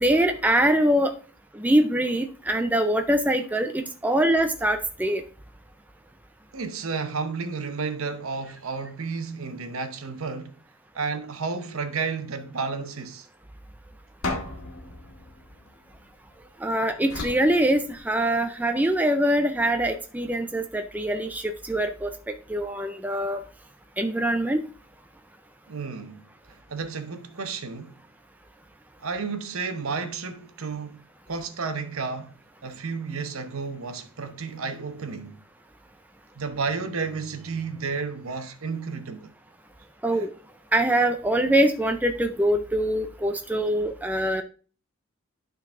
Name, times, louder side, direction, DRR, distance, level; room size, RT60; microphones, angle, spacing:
voice 1, 0.0-1.1 1.5-5.2 16.6-22.1 22.5-23.4 24.0-24.6 40.0-40.3 40.7-44.4, right 1 dB, 5° right, 0.4 m, -23 dB
voice 2, 6.5-10.5 10.9-13.3 25.7-27.9 29.0-32.3 32.6-35.4 36.3-39.3 40.1-40.2, right 4 dB, 70° right, 0.8 m, -32 dB
sound 1, 14.2-16.4 17.1-18.5, left 2 dB, 65° left, 1.6 m, -36 dB
11.5 x 3.9 x 3.6 m
head